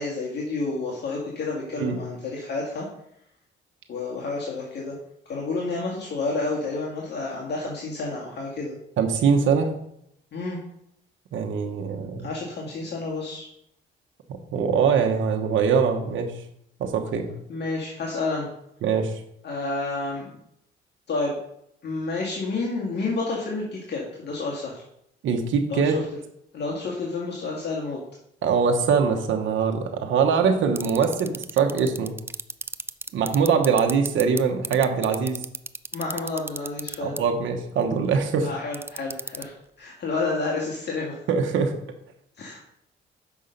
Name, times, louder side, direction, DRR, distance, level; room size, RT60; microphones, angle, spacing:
voice 1, 0.0-2.9 3.9-5.0 5.3-8.8 10.3-10.6 12.2-13.5 17.5-18.5 19.4-20.3 21.1-21.4 21.8-24.8 25.7-26.0 26.5-28.0 35.9-37.2 38.4-41.2 42.4-42.6, left 3 dB, 60° left, -3 dB, 1.8 m, -30 dB
voice 2, 9.0-9.7 11.3-12.3 14.5-16.3 16.8-17.3 18.8-19.1 25.2-26.0 28.4-32.2 33.1-35.4 37.0-38.5 41.3-41.7, right 6 dB, 75° right, 4 dB, 1.2 m, -22 dB
sound 1, 30.8-34.4 34.6-37.2 38.7-39.4, right 3 dB, 10° right, 0.3 m, -30 dB
7.0 x 5.6 x 5.3 m, 0.75 s
cardioid pair, 90°, 20 cm